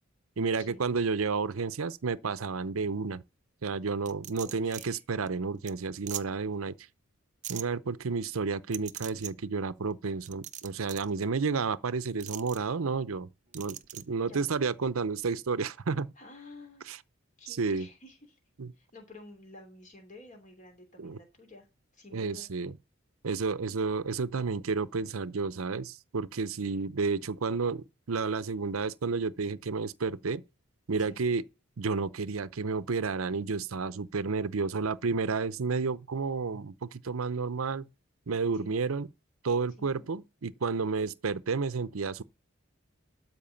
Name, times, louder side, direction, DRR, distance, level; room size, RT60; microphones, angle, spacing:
voice 1, 0.4-3.2 3.6-6.7 7.5-13.3 13.5-16.1 16.9-17.0 17.5-17.9 18.6-18.7 21.0-21.2 22.1-22.7 23.2-30.4 30.9-31.4 31.8-37.9 38.3-39.1 39.4-42.2, right 4 dB, 85° right, 0.7 m, -31 dB
sound 1, 4.1-4.9 5.3-5.4 5.7-5.8 6.1-6.2 7.4-7.6 8.7-9.3 10.3-11.1 12.2-12.6 13.5-14.0, right 12 dB, 35° right, 0.6 m, -40 dB
voice 2, 4.4-5.0 14.1-14.5 16.2-16.9 17.4-18.4 18.8-21.7 21.9-22.5 31.0-31.2 38.6-39.0 39.8-40.1, left 2 dB, 35° left, 2.9 m, -51 dB
12.5 x 4.8 x 7.1 m
head